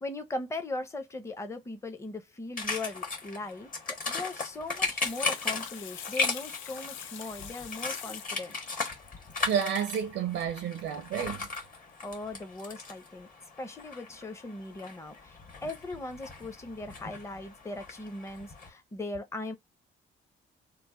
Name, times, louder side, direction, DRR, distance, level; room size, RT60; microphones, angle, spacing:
voice 1, 0.0-8.6 12.0-13.3 13.6-19.5, left 2 dB, 15° left, 0.6 m, -39 dB
sound 1, 2.6-18.7, left 4 dB, 45° left, 1.2 m, -37 dB
Water tap faucet / Sink (filling or washing), 5.0-9.3 10.8-10.9 11.2-11.3 11.5-11.6, left 9 dB, 75° left, 0.5 m, -44 dB
voice 2, 9.4-11.5, right 8 dB, 90° right, 0.6 m, -30 dB
3.0 x 2.1 x 3.6 m
cardioid pair, 90°, 20 cm